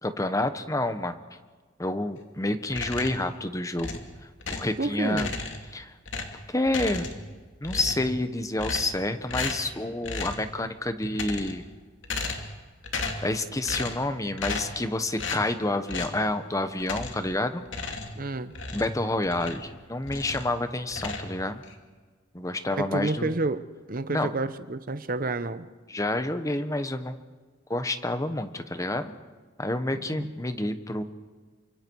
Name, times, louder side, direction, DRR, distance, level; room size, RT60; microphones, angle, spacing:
voice 1, 0.0-1.2 1.8-4.0 4.5-5.3 5.7-5.9 6.5-7.1 7.6-11.6 13.2-17.6 18.7-21.6 22.3-23.3 24.1-24.3 25.9-27.2 27.7-29.1 29.6-31.0, left 1 dB, 15° left, 9 dB, 1.2 m, -29 dB
sound 1, 2.7-3.3 3.8-4.8 5.1-5.7 6.1-7.3 7.6-8.2 8.6-9.0 9.3-9.7 10.0-10.5 11.0-11.7 12.0-12.6 12.8-13.3 13.7-14.1 14.4-14.8 15.2-15.5 15.9-16.2 16.8-17.3 17.7-19.7 20.0-20.5 20.9-21.7, left 3 dB, 75° left, 2.6 m, -34 dB
voice 2, 4.8-5.4 18.2-18.5 22.7-23.6 23.9-25.7 30.1-30.3, right 2 dB, 45° right, 12 dB, 0.9 m, -29 dB
29.0 x 25.0 x 4.8 m, 1.4 s
head